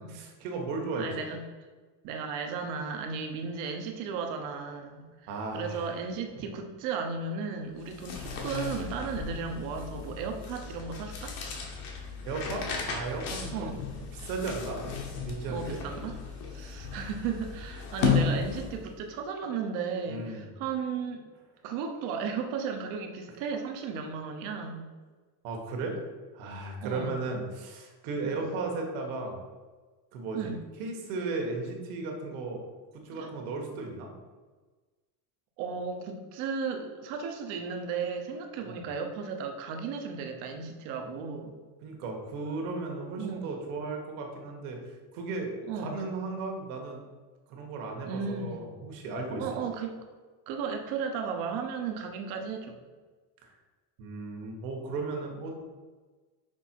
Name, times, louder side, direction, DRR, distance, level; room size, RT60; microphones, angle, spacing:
voice 1, 0.0-1.3 5.3-5.8 6.3-6.4 12.2-13.7 14.2-14.8 15.1-15.8 20.1-20.5 25.4-26.0 26.3-29.4 30.1-30.5 30.8-32.6 32.9-34.1 38.7-38.8 41.8-44.8 45.1-47.0 47.5-49.6 53.4-53.5 54.0-55.6, right 3 dB, 60° right, 1 dB, 1.5 m, -35 dB
voice 2, 1.0-1.4 2.0-5.1 5.5-11.4 13.5-13.8 15.5-16.2 16.5-21.3 21.6-24.9 26.8-27.2 28.2-28.5 30.3-30.6 33.1-33.3 35.6-41.6 43.2-43.5 45.7-46.0 48.0-48.6 49.4-50.0 50.5-52.8, right 5 dB, 40° right, 4 dB, 0.8 m, -35 dB
sound 1, 7.8-19.0, left 5 dB, 45° left, 1.2 m, -34 dB
6.1 x 4.7 x 4.6 m, 1.4 s
cardioid pair, 180°, 48 cm